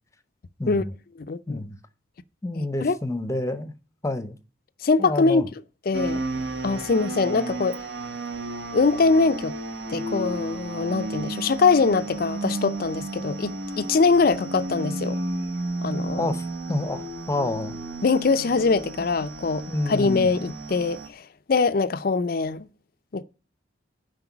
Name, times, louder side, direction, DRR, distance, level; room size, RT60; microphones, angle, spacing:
voice 1, 0.6-0.9 1.5-1.8 2.4-3.7 4.0-4.4 5.0-5.5 16.2-17.8 19.7-20.3, left 2 dB, 15° left, 0.7 m, -28 dB
voice 2, 1.2-1.6 2.5-3.0 4.8-5.5 5.9-6.2 6.6-7.8 8.7-9.5 9.9-15.2 15.8-16.3 18.0-22.7 23.1-23.2, left 4 dB, 50° left, 0.5 m, -23 dB
sound 1, 5.9-21.1, right 2 dB, 60° right, 1.0 m, -33 dB
7.7 x 5.2 x 7.1 m
head